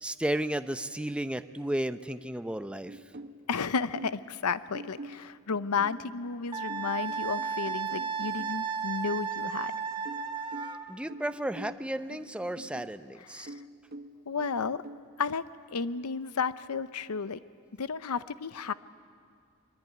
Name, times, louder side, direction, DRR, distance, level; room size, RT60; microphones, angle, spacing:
voice 1, 0.0-3.0 10.9-13.5, right 1 dB, 5° right, 10 dB, 0.6 m, -33 dB
sound 1, 2.9-4.3 4.7-8.6 10.1-13.0 13.5-15.0, right 1 dB, 45° right, 1.1 m, -46 dB
voice 2, 3.5-9.7 13.3-13.6 14.3-14.8 15.2-15.4 15.7-17.4 17.8-18.7, left 5 dB, 85° left, 14 dB, 0.7 m, -32 dB
Wind instrument woodwind instrument, 6.5-10.8, right 6 dB, 20° right, 1.3 m, -34 dB
23.0 x 22.5 x 9.3 m, 2.3 s
head